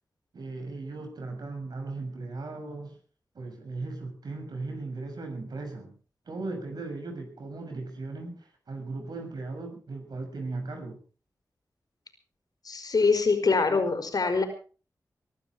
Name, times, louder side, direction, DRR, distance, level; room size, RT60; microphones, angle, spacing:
voice 1, 0.3-3.0 3.3-6.0 6.3-11.0, right 3 dB, 80° right, 4 dB, 6.9 m, -37 dB
voice 2, 12.6-14.4, left 4 dB, 65° left, 6 dB, 5.0 m, -24 dB
22.5 x 12.0 x 5.0 m, 0.39 s
cardioid pair, 55°, 7 cm